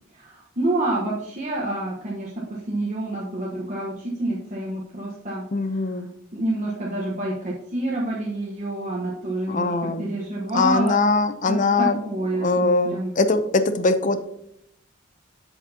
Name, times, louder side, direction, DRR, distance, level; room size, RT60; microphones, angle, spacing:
voice 1, 0.1-2.3 2.7-5.4 6.3-9.7 10.0-10.9 11.5-13.1, right 2 dB, 40° right, -5 dB, 1.2 m, -28 dB
voice 2, 5.5-6.1 9.5-10.1 10.5-12.0 12.3-14.2, left 3 dB, 40° left, 10 dB, 0.6 m, -22 dB
8.0 x 7.5 x 2.8 m, 0.75 s
head